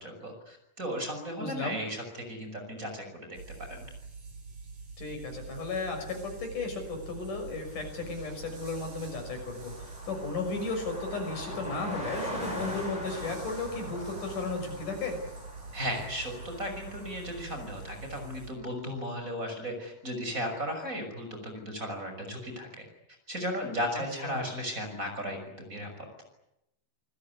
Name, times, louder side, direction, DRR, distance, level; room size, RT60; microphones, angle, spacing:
voice 1, 0.0-3.4 3.7-3.8 15.7-22.9 23.3-26.1, equal, 25° right, 4 dB, 6.5 m, -35 dB
voice 2, 1.4-1.8 5.0-15.2 23.9-24.5, left 3 dB, 70° left, 5 dB, 7.8 m, -35 dB
sound 1, 3.3-18.5, right 4 dB, 85° right, 9.2 m, -45 dB
Car passing by, 7.1-7.2 7.4-18.4, left 1 dB, 10° left, 7.6 m, -43 dB
27.5 x 20.5 x 9.7 m, 0.84 s
omnidirectional pair, 3.7 m